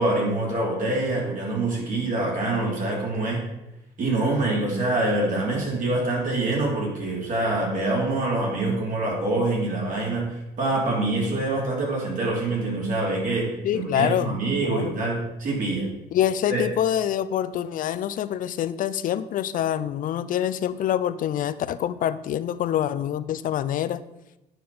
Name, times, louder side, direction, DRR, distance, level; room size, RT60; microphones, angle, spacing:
voice 1, 0.0-3.4 4.0-15.9 16.5-16.6, right 2 dB, 50° right, -2 dB, 3.4 m, -25 dB
voice 2, 13.6-15.0 16.1-24.0, left 10 dB, 55° left, 14 dB, 0.5 m, -26 dB
9.3 x 6.0 x 4.2 m, 0.94 s
cardioid pair, 110°, 17 cm